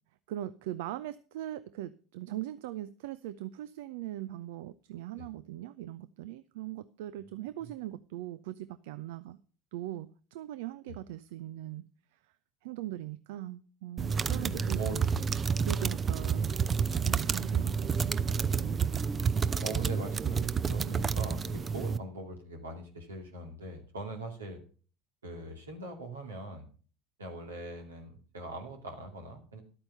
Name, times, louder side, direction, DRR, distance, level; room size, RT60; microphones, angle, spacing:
voice 1, 0.3-9.4 9.7-11.9 12.6-15.1 15.6-16.5 17.0-18.8, right 14 dB, 70° right, 15 dB, 0.5 m, -40 dB
sound 1, 14.0-22.0, right 6 dB, 30° right, 0.6 m, -30 dB
voice 2, 14.4-15.5 18.9-24.6 25.2-26.7 27.2-29.6, right 2 dB, 85° right, 3 dB, 2.5 m, -41 dB
12.0 x 8.8 x 5.6 m, 0.40 s
figure-of-eight pair, 70°, 0 cm